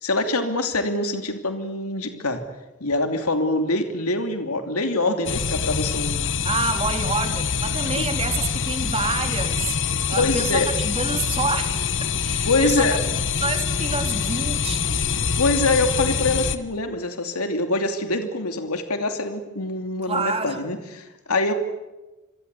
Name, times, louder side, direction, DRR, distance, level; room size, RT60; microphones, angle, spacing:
voice 1, 0.0-2.4 2.8-6.3 7.8-8.1 10.1-10.7 12.5-13.0 15.3-21.5, left 2 dB, 85° left, 6 dB, 2.8 m, -24 dB
sound 1, 5.3-16.6, left 6 dB, 60° left, 1.3 m, -25 dB
voice 2, 6.4-12.9 13.4-15.0 20.1-20.8, right 3 dB, 25° right, 5 dB, 3.4 m, -28 dB
27.5 x 23.5 x 8.3 m, 1.1 s
head